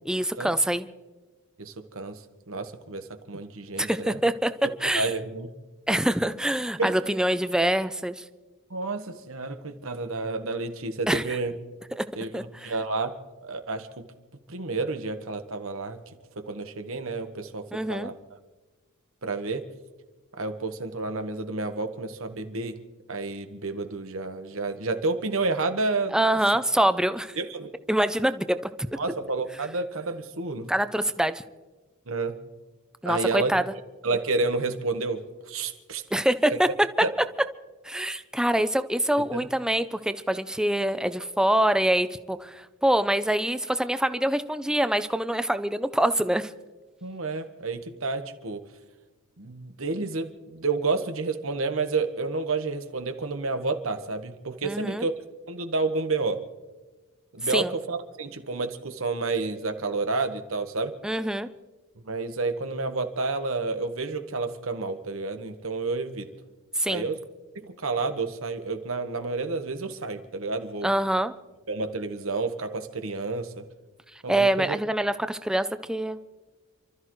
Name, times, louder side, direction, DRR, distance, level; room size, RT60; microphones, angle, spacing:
voice 1, 0.1-0.9 3.8-4.5 4.8-5.1 5.9-8.2 11.1-11.2 12.0-12.1 12.3-12.7 17.7-18.1 26.1-27.4 27.9-28.6 30.7-31.4 33.0-33.6 36.1-36.7 37.8-46.5 54.6-55.1 57.5-57.7 61.0-61.5 66.8-67.1 70.8-71.3 74.3-76.2, right 1 dB, 5° right, 11 dB, 0.5 m, -25 dB
voice 2, 1.6-2.2 2.5-4.2 4.9-5.5 6.8-7.0 8.7-11.5 12.2-12.3 12.6-13.1 13.4-14.1 14.5-16.0 16.4-18.2 19.2-19.6 20.4-22.8 23.1-26.1 27.4-27.7 29.0-30.7 32.1-32.3 33.0-33.6 34.0-36.0 37.0-37.1 39.3-39.5 47.0-48.6 49.4-55.1 55.5-56.4 57.3-60.9 62.0-66.3 66.9-67.2 67.5-70.9 71.7-73.6 74.2-74.8, right 3 dB, 70° right, 7 dB, 1.4 m, -30 dB
28.5 x 13.5 x 3.2 m, 1.2 s
head